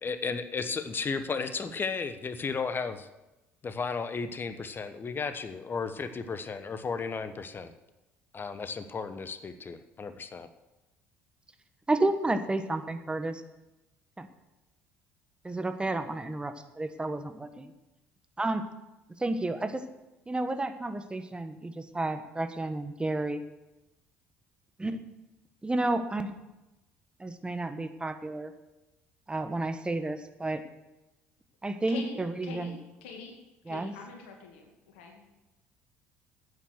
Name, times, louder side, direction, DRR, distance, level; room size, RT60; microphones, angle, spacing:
voice 1, 0.0-3.1 3.6-7.7 8.3-10.5, left 5 dB, 35° left, 10 dB, 1.2 m, -34 dB
voice 2, 11.9-13.4 14.2-14.3 15.4-17.7 18.4-18.6 19.2-19.8 20.3-23.4 24.8-25.0 25.6-26.3 27.2-28.5 29.3-30.6 31.6-32.7 33.7-33.9, right 2 dB, 15° right, 9 dB, 1.4 m, -31 dB
voice 3, 31.9-33.3 33.7-35.3, left 4 dB, 80° left, 2 dB, 2.1 m, -44 dB
11.0 x 9.1 x 6.5 m, 0.98 s
hypercardioid pair, 60°, 6 cm